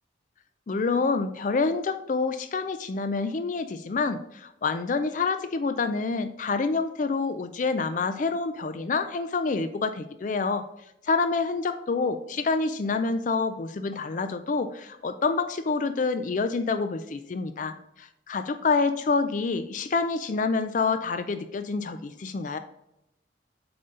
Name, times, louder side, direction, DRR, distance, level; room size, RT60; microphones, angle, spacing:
voice 1, 0.7-10.6 11.0-22.6, left 4 dB, 40° left, 9 dB, 0.4 m, -27 dB
7.7 x 3.9 x 3.8 m, 0.86 s
head